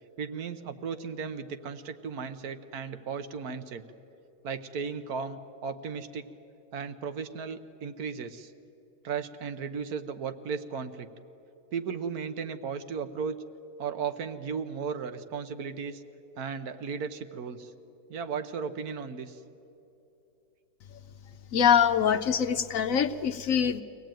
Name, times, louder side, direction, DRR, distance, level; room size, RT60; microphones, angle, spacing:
voice 1, 0.2-3.8 4.4-6.3 6.7-8.5 9.0-11.1 11.7-13.4 13.8-16.0 16.4-17.7 18.1-19.4, right 6 dB, 85° right, 10 dB, 1.5 m, -35 dB
voice 2, 21.5-23.8, left 8 dB, 70° left, 9 dB, 1.1 m, -24 dB
24.0 x 17.5 x 9.1 m, 2.9 s
omnidirectional pair, 1.6 m